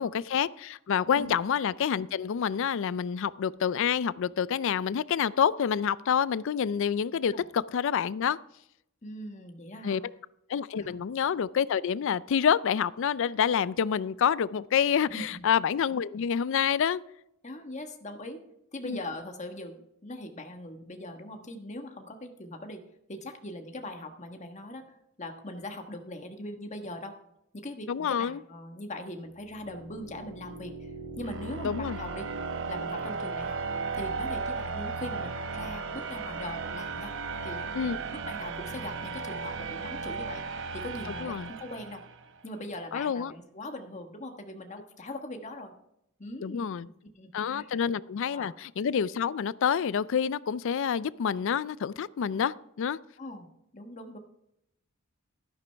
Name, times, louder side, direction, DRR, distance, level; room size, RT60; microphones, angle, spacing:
voice 1, 0.0-8.4 9.8-10.1 10.5-17.0 18.8-19.0 27.9-28.4 31.6-32.0 37.7-38.0 41.2-41.5 42.9-43.3 46.4-46.9 47.3-53.0, left 7 dB, 65° left, 19 dB, 0.4 m, -28 dB
voice 2, 9.0-10.0 10.8-11.0 15.1-15.4 17.4-18.4 18.7-22.8 23.1-27.1 27.5-32.3 32.7-33.6 33.9-37.1 37.4-40.4 40.7-42.0 42.4-45.7 46.2-47.8 48.3-48.5 52.3-52.4 53.2-54.2, left 1 dB, 35° left, 5 dB, 1.3 m, -41 dB
sound 1, 29.4-42.3, right 4 dB, 60° right, 0.9 m, -36 dB
13.0 x 11.0 x 3.4 m, 0.80 s
head